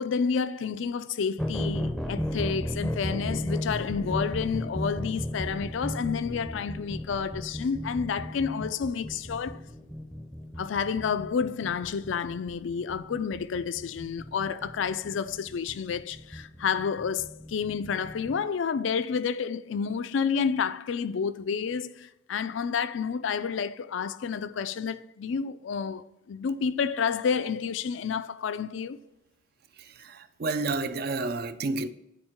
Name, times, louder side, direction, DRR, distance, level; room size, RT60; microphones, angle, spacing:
voice 1, 0.0-9.6 10.6-29.0, left 6 dB, 70° left, 0.4 m, -30 dB
sound 1, 1.4-18.4, left 1 dB, ahead, 0.5 m, -35 dB
voice 2, 30.0-31.9, right 3 dB, 50° right, 0.4 m, -30 dB
9.1 x 4.4 x 3.6 m
head